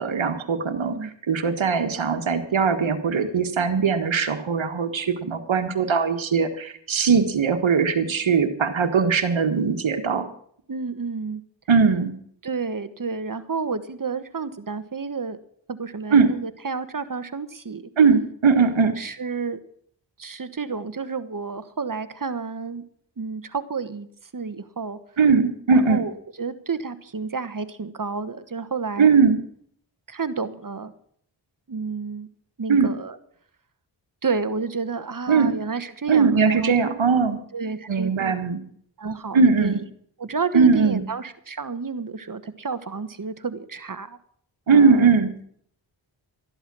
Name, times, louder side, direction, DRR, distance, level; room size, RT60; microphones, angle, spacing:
voice 1, 0.0-10.2 11.7-12.1 16.1-16.3 18.0-18.9 25.2-26.0 29.0-29.4 32.7-32.9 35.3-35.6 36.1-37.4 37.9-38.6 39.3-39.8 40.5-41.0 44.7-45.3, right 5 dB, 75° right, 8 dB, 1.6 m, -20 dB
voice 2, 10.7-11.4 12.4-15.4 15.7-17.9 19.0-19.6 20.2-22.8 23.2-24.1 24.3-25.0 25.9-29.1 30.1-30.9 31.7-32.3 32.6-33.2 34.2-36.8 37.5-38.3 39.0-39.8 40.2-44.2 44.7-45.1, right 5 dB, 45° right, 12 dB, 1.3 m, -30 dB
13.5 x 11.5 x 6.2 m, 0.63 s
cardioid pair, 50°, 47 cm